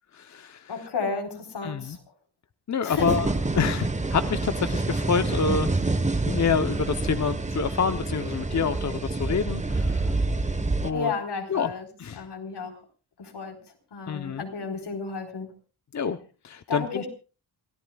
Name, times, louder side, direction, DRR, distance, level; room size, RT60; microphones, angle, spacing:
voice 1, 0.1-0.9 1.6-2.0 2.7-5.7 6.3-10.1 10.8-11.1 11.5-11.7 12.0-12.2 14.1-14.4 15.9-16.2 16.4-17.0, left 6 dB, 45° left, 9 dB, 0.9 m, -27 dB
voice 2, 0.7-2.0 2.8-3.1 10.9-11.9 12.2-12.7 13.2-13.6 13.9-15.5 16.7-17.1, left 4 dB, 85° left, 4 dB, 4.4 m, -32 dB
sound 1, 3.0-10.9, right 2 dB, 20° right, 1.3 m, -27 dB
28.0 x 17.5 x 2.4 m, 0.35 s
wide cardioid pair, 165°, 40 cm